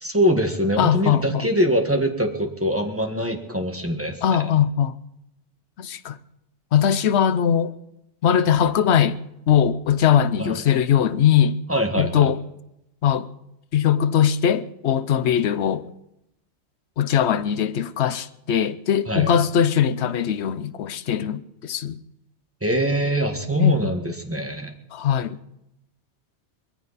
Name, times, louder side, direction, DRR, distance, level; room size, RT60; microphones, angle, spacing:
voice 1, 0.0-4.4 10.4-10.5 11.7-12.3 19.0-19.3 22.6-24.7, equal, 10° right, 1.5 m, -23 dB
voice 2, 0.8-1.5 4.2-5.0 5.8-6.2 6.7-7.7 8.2-9.2 9.5-11.6 12.0-12.4 13.0-13.3 13.7-15.9 17.0-22.0 23.6-23.8 24.9-25.4, left 9 dB, 70° left, 1.0 m, -20 dB
21.5 x 15.0 x 4.1 m
omnidirectional pair, 1.2 m